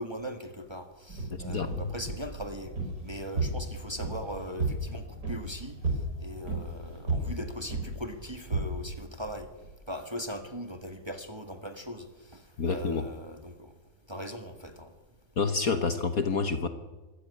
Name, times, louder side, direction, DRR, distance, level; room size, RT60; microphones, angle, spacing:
voice 1, 0.0-2.7 3.0-5.8 6.2-9.5 9.9-12.1 12.3-13.7 14.1-14.9, equal, 15° right, 7 dB, 1.7 m, -39 dB
sound 1, 1.1-9.8, right 2 dB, 50° right, 5.0 m, -34 dB
voice 2, 1.3-1.7 12.6-13.1 15.4-16.7, left 5 dB, 50° left, 8 dB, 1.5 m, -28 dB
25.0 x 14.0 x 9.8 m, 1.2 s
omnidirectional pair, 2.2 m